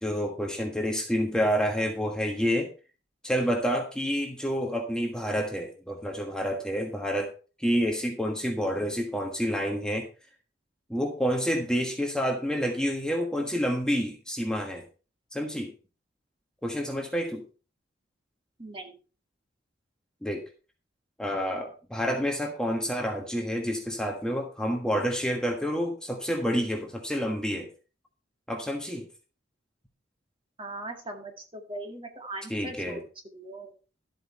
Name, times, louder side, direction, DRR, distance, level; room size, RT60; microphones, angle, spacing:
voice 1, 0.0-2.7 3.2-7.3 7.6-10.1 10.9-14.8 15.3-15.7 16.6-17.4 20.2-20.4 21.2-27.7 28.5-29.1 32.5-33.0, equal, 5° left, 2 dB, 1.4 m, -28 dB
voice 2, 18.6-19.0 30.6-33.0 33.3-33.7, right 2 dB, 30° right, 3 dB, 2.1 m, -39 dB
12.5 x 7.9 x 4.2 m, 0.35 s
head